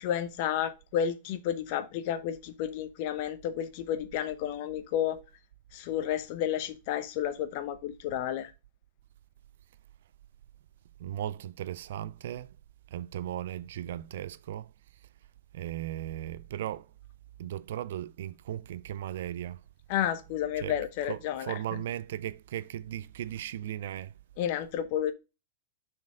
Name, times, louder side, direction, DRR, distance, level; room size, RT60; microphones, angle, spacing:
voice 1, 0.0-5.2 5.7-8.5 19.9-21.6 24.4-25.1, left 10 dB, 55° left, 0.8 m, -31 dB
voice 2, 11.0-12.6 12.9-15.1 15.5-16.9 17.4-19.6 20.6-20.8 21.1-24.1, right 12 dB, 65° right, 0.4 m, -37 dB
6.1 x 4.5 x 4.9 m
hypercardioid pair, 100°, 0 cm